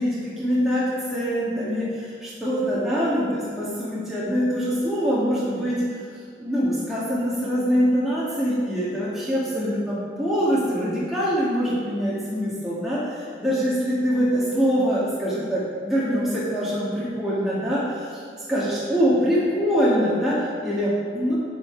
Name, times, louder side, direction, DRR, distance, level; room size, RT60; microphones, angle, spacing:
voice 1, 0.0-5.8 6.4-13.0 13.4-17.8 18.5-21.4, equal, ahead, -10 dB, 1.7 m, -24 dB
9.0 x 8.1 x 4.5 m, 2.2 s
head